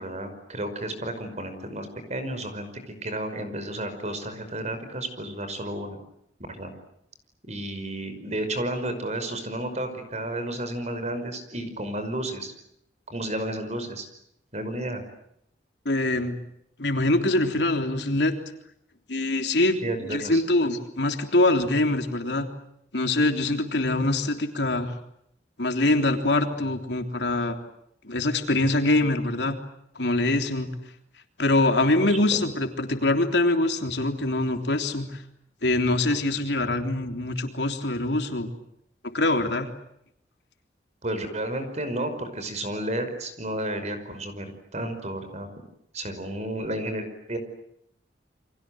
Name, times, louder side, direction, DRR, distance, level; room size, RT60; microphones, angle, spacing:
voice 1, 0.0-6.0 6.6-6.7 7.5-12.5 13.1-14.1 14.5-15.0 19.8-20.4 32.1-32.4 41.0-45.5 45.9-47.4, right 1 dB, 40° right, 9 dB, 5.5 m, -32 dB
voice 2, 15.9-16.4 16.8-18.3 19.1-22.5 22.9-24.9 25.6-27.6 28.0-29.6 30.0-30.7 31.4-35.2 35.6-38.5 39.1-39.7, left 2 dB, 70° left, 5 dB, 3.5 m, -24 dB
30.0 x 25.0 x 7.8 m, 0.74 s
head